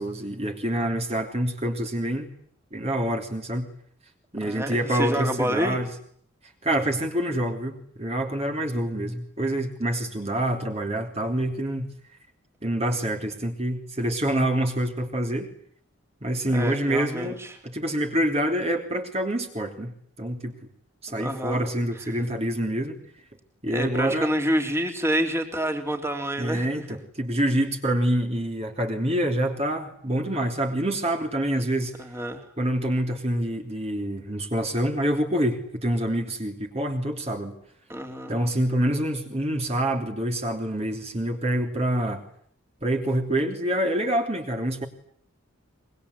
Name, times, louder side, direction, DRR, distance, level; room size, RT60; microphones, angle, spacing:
voice 1, 0.0-2.3 2.7-3.7 4.3-5.9 6.6-11.9 12.6-15.5 16.2-17.4 17.6-19.9 20.2-20.5 21.0-23.0 23.6-24.3 26.4-31.9 32.6-37.5 38.3-42.2 42.8-44.9, right 1 dB, 30° right, 3 dB, 3.3 m, -26 dB
voice 2, 4.4-5.8 16.5-17.6 21.2-21.6 23.7-27.0 32.0-32.4 37.9-38.4, equal, 10° right, 5 dB, 3.4 m, -28 dB
25.5 x 23.0 x 9.9 m, 0.63 s
head